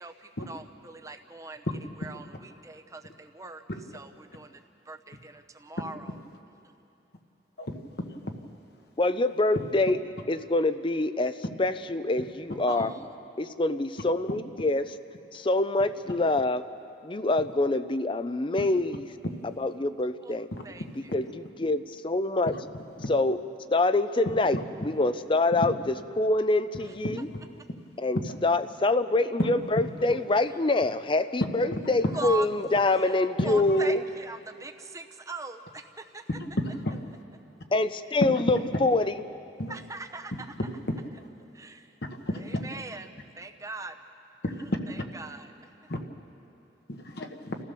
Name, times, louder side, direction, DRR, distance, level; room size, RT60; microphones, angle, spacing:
voice 1, 0.0-1.7 2.0-3.6 3.9-6.2 12.7-13.1 20.2-20.3 20.6-21.1 26.8-26.9 30.5-30.6 32.1-32.5 33.0-36.2 39.7-40.5 41.5-41.9 42.3-44.0 44.7-45.9, right 3 dB, 20° right, 6 dB, 0.8 m, -41 dB
voice 2, 9.0-10.0 10.3-12.9 13.4-14.9 15.3-16.7 17.0-19.1 19.6-20.5 21.1-22.5 23.1-23.4 23.7-27.3 28.0-34.0 37.7-39.1, left 2 dB, 30° left, 12 dB, 0.5 m, -25 dB
voice 3, 27.0-27.6 29.4-29.5 31.7-31.8 36.8-37.0 39.6-39.7 42.3-42.6 44.4-44.6 45.9-46.0 46.9-47.6, left 1 dB, 60° left, 4 dB, 1.3 m, -32 dB
29.5 x 15.0 x 6.9 m, 2.8 s
head